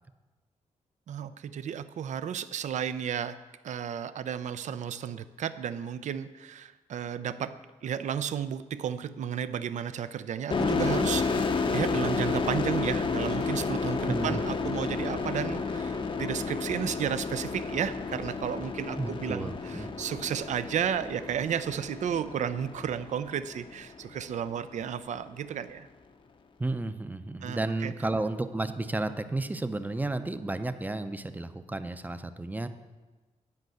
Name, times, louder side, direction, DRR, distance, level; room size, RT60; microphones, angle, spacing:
voice 1, 1.1-3.4 3.6-7.6 7.8-25.9 27.4-27.9, right 8 dB, 65° right, 13 dB, 0.5 m, -33 dB
sound 1, 10.5-23.9, left 4 dB, 40° left, 0.7 m, -31 dB
voice 2, 14.0-14.5 19.0-19.9 26.6-32.7, right 2 dB, 15° right, 10 dB, 0.6 m, -32 dB
10.5 x 5.3 x 7.7 m, 1.2 s
cardioid pair, 100°, 13 cm